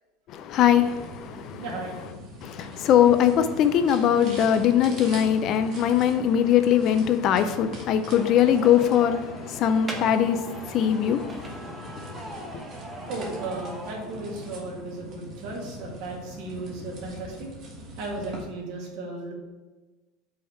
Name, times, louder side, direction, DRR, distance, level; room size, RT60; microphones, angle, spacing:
voice 1, 0.3-1.7 2.4-12.6, left 9 dB, 40° left, 0.4 m, -22 dB
sound 1, 0.6-18.4, equal, 40° right, 1.4 m, -43 dB
voice 2, 1.6-2.0 13.1-17.3 18.0-19.3, right 2 dB, 60° right, 1.7 m, -35 dB
sound 2, 8.1-14.5, right 1 dB, 15° right, 0.8 m, -40 dB
5.5 x 3.4 x 5.5 m
cardioid pair, 160°, 0 cm